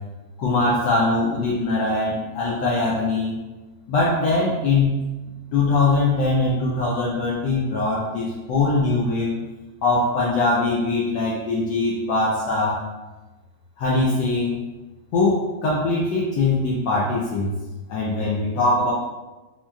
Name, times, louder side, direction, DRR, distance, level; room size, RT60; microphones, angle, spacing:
voice 1, 0.4-3.4 3.9-4.9 5.5-9.3 9.8-12.9 13.8-14.6 15.1-17.6 17.9-18.9, left 3 dB, 70° left, -5 dB, 1.1 m, -22 dB
4.3 x 2.9 x 2.3 m, 1.2 s
omnidirectional pair, 2.2 m